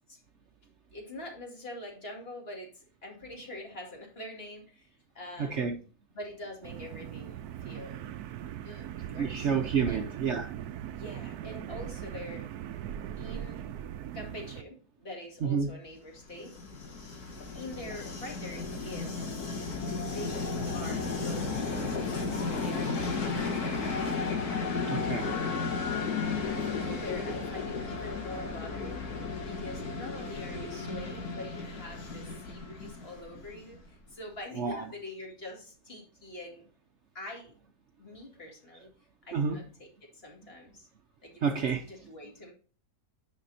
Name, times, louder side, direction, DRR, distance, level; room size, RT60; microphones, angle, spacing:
voice 1, 0.9-5.6 6.1-8.0 8.6-8.9 9.1-9.5 9.9-10.1 10.9-12.5 13.2-13.6 14.1-16.6 17.5-19.5 20.1-24.1 25.2-25.8 26.8-29.1 29.4-36.6 37.1-37.5 38.0-38.9 39.2-40.9 41.2-41.4 41.9-42.5, left 1 dB, 40° left, 2.5 m, -44 dB
voice 2, 5.4-5.8 9.2-10.5 15.4-15.7 24.9-25.3 34.5-34.8 39.3-39.6 41.4-41.9, right 6 dB, 55° right, 0.9 m, -29 dB
sound 1, 6.6-14.6, right 11 dB, 90° right, 1.2 m, -40 dB
Train, 16.2-33.9, left 4 dB, 80° left, 2.1 m, -34 dB
9.9 x 4.2 x 4.1 m
omnidirectional pair, 1.6 m